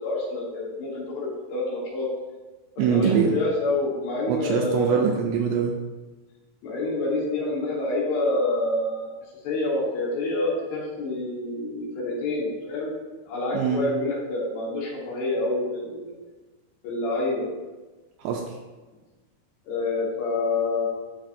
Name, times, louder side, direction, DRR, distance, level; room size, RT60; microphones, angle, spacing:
voice 1, 0.0-2.1 2.8-5.0 6.6-9.1 9.4-12.9 13.2-16.1 16.8-17.5 19.7-20.9, left 2 dB, 70° left, -5 dB, 3.3 m, -27 dB
voice 2, 2.8-3.3 4.3-5.7 13.5-13.8 18.2-18.6, right 7 dB, 85° right, 1 dB, 2.5 m, -23 dB
10.5 x 4.2 x 2.6 m, 1.2 s
omnidirectional pair, 5.2 m